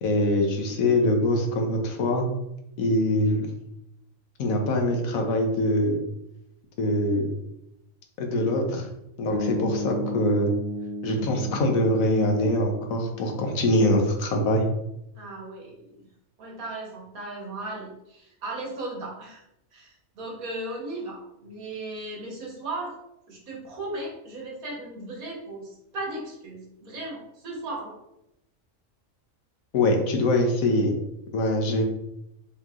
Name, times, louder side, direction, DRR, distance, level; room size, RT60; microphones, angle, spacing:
voice 1, 0.0-2.3 2.8-3.5 4.4-6.0 6.8-7.3 8.2-8.9 9.2-10.5 11.0-14.6 29.7-30.9 31.3-31.8, left 1 dB, 75° left, 3 dB, 1.2 m, -23 dB
sound 1, 9.3-13.5, left 1 dB, 5° right, 1.0 m, -34 dB
voice 2, 15.1-16.0 16.4-19.4 19.7-23.0 23.3-28.0, right 2 dB, 80° right, -3 dB, 1.6 m, -36 dB
5.3 x 3.0 x 2.4 m, 0.83 s
omnidirectional pair, 1.5 m